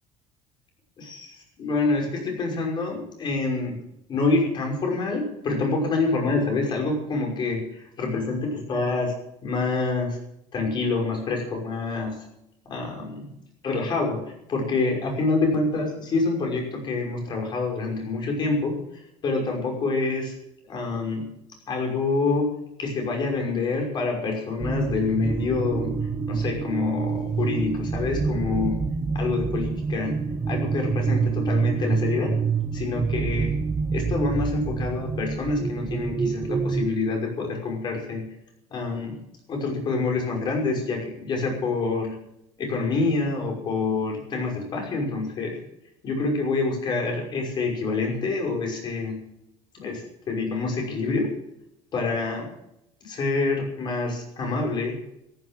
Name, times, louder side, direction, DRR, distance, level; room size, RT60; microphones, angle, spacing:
voice 1, 1.0-3.8 4.1-9.1 9.4-10.2 10.5-12.2 12.7-13.3 13.6-14.2 14.5-18.8 19.2-20.3 20.7-21.2 21.7-22.5 22.8-25.9 26.3-28.8 29.1-30.2 30.5-32.4 32.7-33.6 33.9-38.2 38.7-39.2 39.5-42.1 42.6-45.6 46.0-49.2 49.7-51.3 51.9-52.5 53.0-55.0, left 3 dB, 40° left, 1 dB, 5.8 m, -26 dB
sound 1, 24.6-36.9, right 5 dB, 20° right, 0.8 m, -27 dB
14.0 x 11.5 x 7.5 m, 0.80 s
cardioid pair, 155°, 12 cm